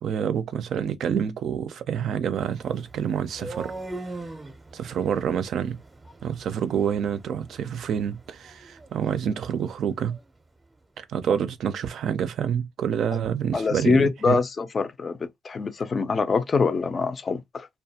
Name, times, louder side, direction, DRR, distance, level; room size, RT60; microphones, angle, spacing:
voice 1, 0.0-3.7 4.7-5.8 6.2-10.2 11.0-14.4, right 8 dB, 70° right, 0.4 m, -27 dB
sound 1, 2.4-10.3, right 2 dB, 20° right, 0.6 m, -42 dB
voice 2, 13.5-17.7, left 4 dB, 40° left, 0.4 m, -24 dB
2.4 x 2.2 x 2.7 m
cardioid pair, 90°, 0 cm